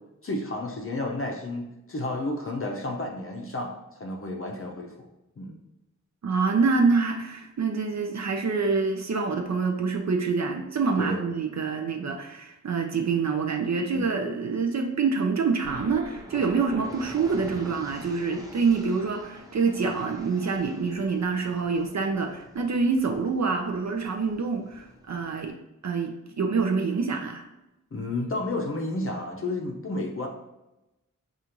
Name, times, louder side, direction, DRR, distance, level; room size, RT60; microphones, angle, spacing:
voice 1, 0.2-5.1 5.4-5.6 11.0-11.2 13.9-14.2 27.9-30.3, left 2 dB, 40° left, 0 dB, 0.6 m, -31 dB
voice 2, 6.2-25.5 25.8-27.4, right 4 dB, 55° right, 3 dB, 0.5 m, -26 dB
sound 1, 15.6-25.5, equal, 10° right, 0.6 m, -46 dB
5.0 x 2.4 x 2.9 m, 0.96 s
wide cardioid pair, 70°, 32 cm